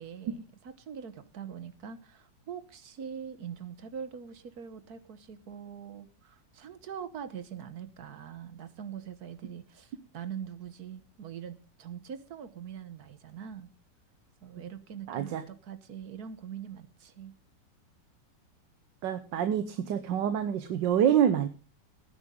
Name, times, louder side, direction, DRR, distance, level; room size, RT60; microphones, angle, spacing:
voice 1, 0.0-13.7 14.4-17.3, right 8 dB, 60° right, 12 dB, 1.6 m, -43 dB
voice 2, 15.1-15.4 19.0-21.5, right 9 dB, 90° right, 9 dB, 1.6 m, -26 dB
18.0 x 9.7 x 3.7 m, 0.36 s
omnidirectional pair, 1.9 m